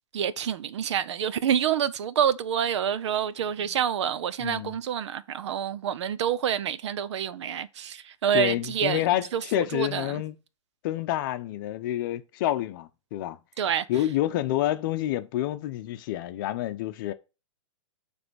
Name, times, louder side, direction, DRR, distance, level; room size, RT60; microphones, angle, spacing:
voice 1, 0.1-9.0 9.3-10.2 13.6-13.8, right 9 dB, 60° right, 0.7 m, -27 dB
voice 2, 4.4-4.8 8.3-10.4 10.8-13.4 13.9-17.1, left 14 dB, 40° left, 0.7 m, -28 dB
9.4 x 3.4 x 6.2 m
hypercardioid pair, 145°, 16 cm